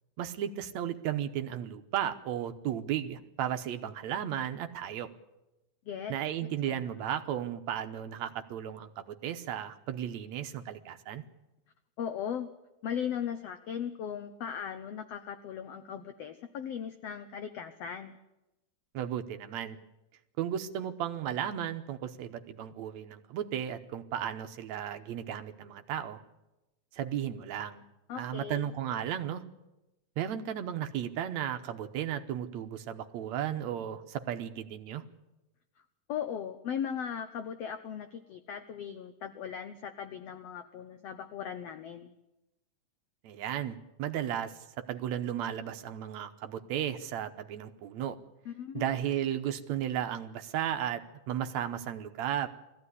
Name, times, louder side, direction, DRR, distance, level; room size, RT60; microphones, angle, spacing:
voice 1, 0.2-5.1 6.1-11.2 18.9-19.8 20.4-26.2 26.9-27.8 28.2-29.4 30.2-35.0 43.2-48.2 48.7-52.5, right 10 dB, 70° right, 8 dB, 2.1 m, -34 dB
voice 2, 6.7-7.0 12.0-12.5 12.8-18.2 28.1-28.7 36.1-42.1 48.4-48.9, left 8 dB, 65° left, 9 dB, 1.6 m, -38 dB
20.0 x 15.5 x 9.8 m, 0.97 s
omnidirectional pair, 3.7 m